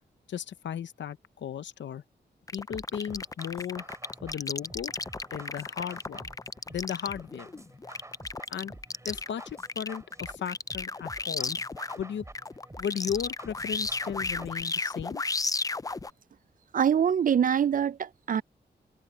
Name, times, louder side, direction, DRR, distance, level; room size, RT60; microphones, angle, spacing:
voice 1, 0.3-2.0 2.5-3.9 4.2-4.9 5.3-6.3 6.7-7.5 8.5-8.7 9.0-11.6 12.0-12.2 12.8-15.2, left 8 dB, 85° left, 0.7 m, -35 dB
sound 1, 2.5-12.0 12.3-16.1, left 3 dB, 20° left, 0.4 m, -34 dB
sound 2, 2.7-14.7, right 1 dB, 15° right, 4.0 m, -49 dB
voice 2, 16.7-18.4, right 8 dB, 50° right, 0.4 m, -24 dB
cardioid pair, 85°, 18 cm